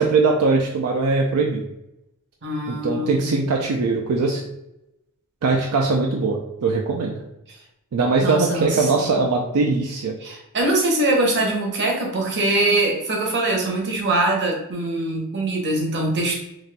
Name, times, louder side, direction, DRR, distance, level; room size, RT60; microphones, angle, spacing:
voice 1, 0.0-1.7 2.7-4.4 5.4-7.2 7.9-10.2, right 3 dB, 75° right, 0 dB, 0.4 m, -21 dB
voice 2, 2.4-3.4 8.2-9.2 10.2-16.3, right 2 dB, 50° right, 0 dB, 0.8 m, -23 dB
4.1 x 2.5 x 2.2 m, 0.85 s
head